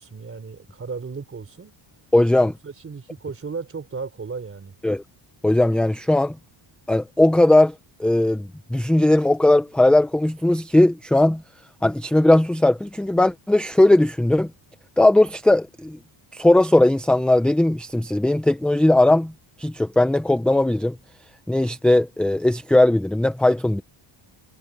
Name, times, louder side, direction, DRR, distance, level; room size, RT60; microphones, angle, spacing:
voice 1, 0.0-1.7 2.4-4.8, right 5 dB, 25° right, 3.8 m, -35 dB
voice 2, 2.1-2.5 4.8-5.0 5.4-6.4 6.9-7.7 8.0-11.4 11.8-14.5 15.0-16.0 16.3-19.3 19.6-21.0 21.5-23.8, left 1 dB, ahead, 0.4 m, -18 dB
cardioid pair, 165°, 50 cm